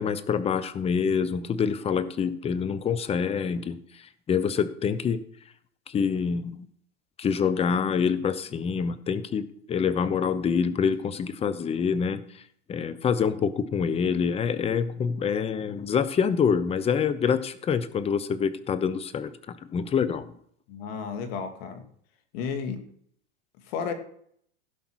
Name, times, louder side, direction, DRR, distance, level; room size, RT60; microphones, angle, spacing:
voice 1, 0.0-3.8 4.3-5.2 5.9-6.7 7.2-12.2 12.7-20.3, left 6 dB, 15° left, 14 dB, 0.8 m, -26 dB
voice 2, 20.7-21.8 22.3-22.8 23.7-23.9, left 6 dB, 60° left, 7 dB, 2.4 m, -32 dB
16.5 x 5.5 x 6.3 m, 0.65 s
supercardioid pair, 135°, 34 cm